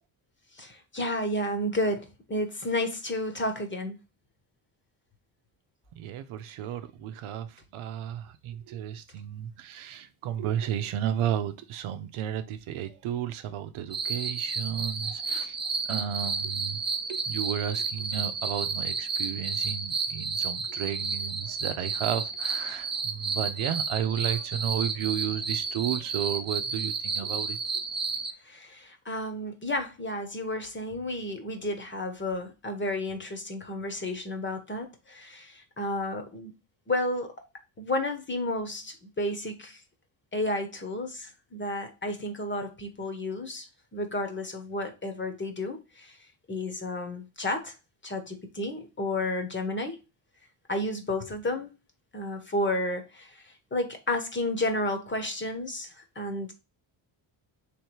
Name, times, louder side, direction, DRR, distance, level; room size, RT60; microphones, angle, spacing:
voice 1, 0.6-4.0 28.5-36.5 36.9-37.3 37.8-39.8 40.3-43.7 43.9-46.1 46.5-47.7 48.0-50.0 50.7-51.7 52.1-53.3 53.7-56.5, left 1 dB, 25° left, 1.2 m, -32 dB
voice 2, 5.9-15.6 15.9-16.8 17.1-27.8, right 10 dB, 80° right, 0.8 m, -33 dB
sound 1, 13.9-28.3, right 5 dB, 20° right, 0.7 m, -31 dB
3.4 x 3.3 x 4.6 m
cardioid pair, 95°, 49 cm